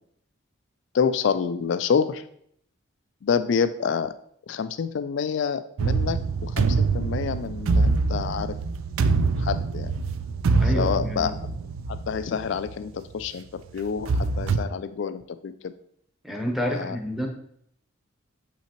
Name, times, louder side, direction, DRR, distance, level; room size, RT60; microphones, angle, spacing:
voice 1, 0.9-2.3 3.2-4.1 4.5-8.6 9.4-9.9 10.6-11.3 11.9-15.7 16.7-17.0, left 6 dB, 60° left, 12 dB, 0.3 m, -27 dB
sound 1, 5.8-12.7 13.2-13.3 13.9-14.6, right 4 dB, 80° right, 0.4 m, -24 dB
voice 2, 10.6-11.3 16.2-17.3, equal, ahead, 0 dB, 0.9 m, -29 dB
7.0 x 5.6 x 2.9 m, 0.68 s
head